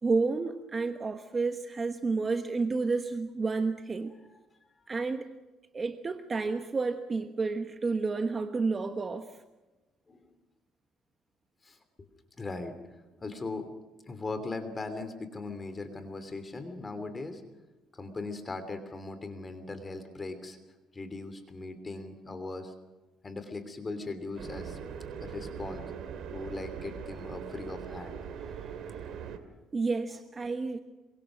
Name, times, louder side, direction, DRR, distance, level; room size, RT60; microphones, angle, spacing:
voice 1, 0.0-4.1 4.9-5.3 5.7-9.3 29.7-30.8, right 4 dB, 25° right, 7 dB, 1.2 m, -30 dB
voice 2, 11.6-12.1 12.4-12.8 13.2-13.7 14.1-17.4 17.9-20.6 20.9-22.7 23.2-24.8 25.2-25.8 26.3-28.6, left 3 dB, 25° left, 9 dB, 3.0 m, -39 dB
sound 1, 24.3-29.4, right 7 dB, 65° right, 2.8 m, -41 dB
27.0 x 24.5 x 6.2 m, 1.2 s
cardioid pair, 115°, 0 cm